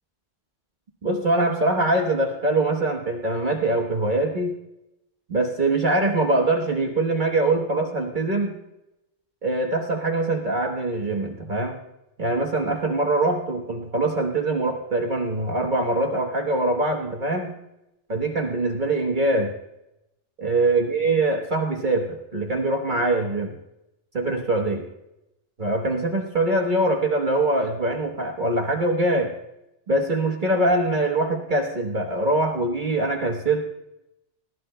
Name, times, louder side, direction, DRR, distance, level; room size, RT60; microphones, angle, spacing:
voice 1, 1.0-4.6 5.3-8.6 9.4-11.8 12.2-17.6 18.1-19.5 20.4-23.6 24.1-24.9 25.6-29.3 29.9-33.6, right 2 dB, 45° right, 1 dB, 1.3 m, -23 dB
20.0 x 14.5 x 2.2 m, 0.89 s
omnidirectional pair, 1.2 m